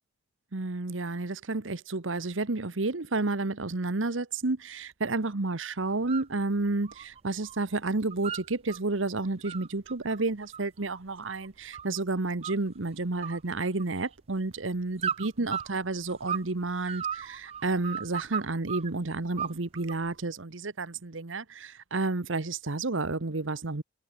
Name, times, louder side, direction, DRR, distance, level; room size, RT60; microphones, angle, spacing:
voice 1, 0.5-23.8, right 3 dB, 90° right, 1.2 m, -31 dB
sound 1, 5.9-6.3 6.6-7.6 7.9-8.8 9.2-12.0 12.4-12.9 13.2-14.2 15.0-16.5 16.8-18.9 19.4-20.1, right 8 dB, 30° right, 0.4 m, -36 dB
head